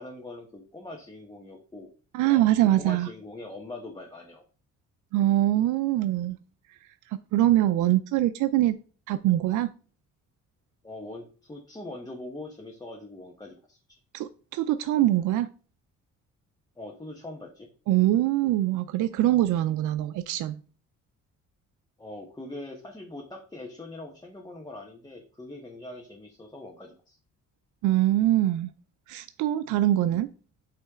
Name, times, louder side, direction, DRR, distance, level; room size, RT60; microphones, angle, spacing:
voice 1, 0.0-1.9 2.2-2.4 2.8-4.4 10.8-13.8 16.8-17.7 22.0-27.2, left 2 dB, 15° left, 1.3 m, -42 dB
voice 2, 2.1-3.1 5.1-6.4 7.3-8.8 9.1-9.7 14.1-15.5 17.9-20.6 27.8-28.7 29.1-30.3, right 14 dB, 80° right, 0.5 m, -23 dB
8.5 x 3.2 x 3.7 m
cardioid pair, 90°, 30 cm